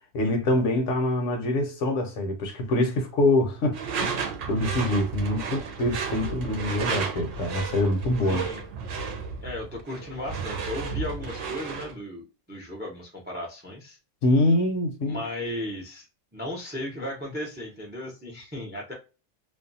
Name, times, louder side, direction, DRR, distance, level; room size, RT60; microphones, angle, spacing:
voice 1, 0.1-8.4 14.2-15.2, left 1 dB, 75° left, 1.1 m, -25 dB
Door / Screech, 3.7-12.0, right 5 dB, 70° right, 0.9 m, -33 dB
voice 2, 8.3-8.6 9.4-14.0 15.1-16.1 16.3-18.9, left 1 dB, 15° right, 0.3 m, -35 dB
2.6 x 2.2 x 2.5 m
omnidirectional pair, 1.4 m